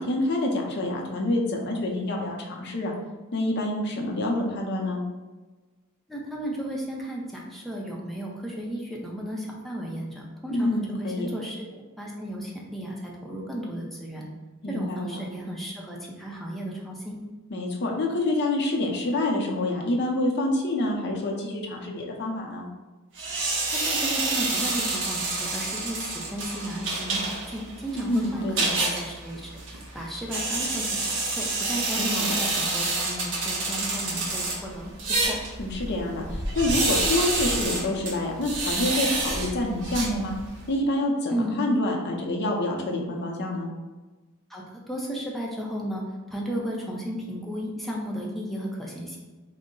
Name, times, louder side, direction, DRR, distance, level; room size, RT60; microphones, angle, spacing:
voice 1, 0.0-2.9 3.3-5.0 10.5-11.3 14.6-15.2 17.5-22.7 27.9-28.7 32.0-32.3 35.6-40.3 40.7-43.7, left 1 dB, 50° left, 0 dB, 0.7 m, -27 dB
voice 2, 6.1-14.3 14.7-17.2 23.6-34.9 35.3-35.4 41.3-41.6 44.5-46.0 46.3-49.2, equal, ahead, -3 dB, 0.6 m, -34 dB
sound 1, 23.2-40.7, right 2 dB, 60° right, 0.8 m, -29 dB
3.8 x 2.1 x 3.7 m, 1.2 s
head